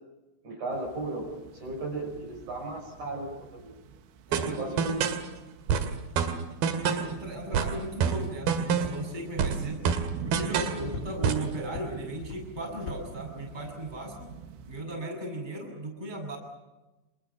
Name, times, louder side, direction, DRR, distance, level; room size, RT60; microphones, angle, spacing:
voice 1, 0.4-3.7 4.3-5.1 5.7-5.9 10.7-10.9, right 2 dB, 40° right, 0 dB, 6.8 m, -36 dB
sound 1, 0.7-14.8, right 7 dB, 80° right, 3.8 m, -45 dB
voice 2, 4.3-4.9 6.8-9.9 10.2-14.3 14.7-16.4, right 1 dB, 10° right, 1 dB, 6.6 m, -37 dB
sound 2, 4.3-5.3 5.7-7.2 7.5-9.1 9.4-10.8 11.2-11.5, right 7 dB, 60° right, 3.1 m, -27 dB
sound 3, 8.8-9.0 9.9-10.0 10.9-11.4 11.7-11.9 12.3-12.4 12.9-13.0, left 4 dB, 65° left, 5.3 m, -38 dB
28.5 x 27.5 x 5.8 m, 1.1 s
omnidirectional pair, 5.8 m